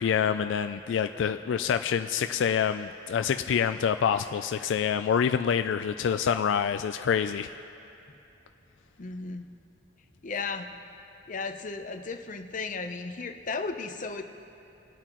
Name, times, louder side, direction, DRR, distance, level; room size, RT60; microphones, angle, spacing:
voice 1, 0.0-7.5, left 7 dB, 80° left, 10 dB, 0.3 m, -26 dB
voice 2, 9.0-9.5 10.2-10.7 11.3-14.2, left 4 dB, 45° left, 7 dB, 0.7 m, -35 dB
26.0 x 8.9 x 3.0 m, 2.9 s
head